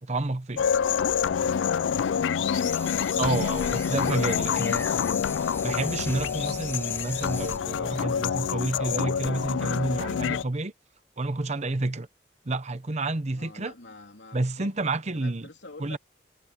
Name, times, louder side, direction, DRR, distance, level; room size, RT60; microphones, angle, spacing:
voice 1, 0.0-0.6 3.2-4.8 5.6-10.7 11.2-12.1 12.4-13.7 14.3-15.5 15.8-16.0, right 2 dB, 40° right, 0.9 m, -29 dB
sound 1, 0.6-10.4, left 7 dB, 85° left, 0.4 m, -27 dB
voice 2, 0.8-2.6 4.2-5.1 13.3-14.7 15.1-16.0, left 2 dB, 70° left, 3.4 m, -46 dB
sound 2, 2.5-7.6, left 3 dB, 15° left, 0.4 m, -39 dB
head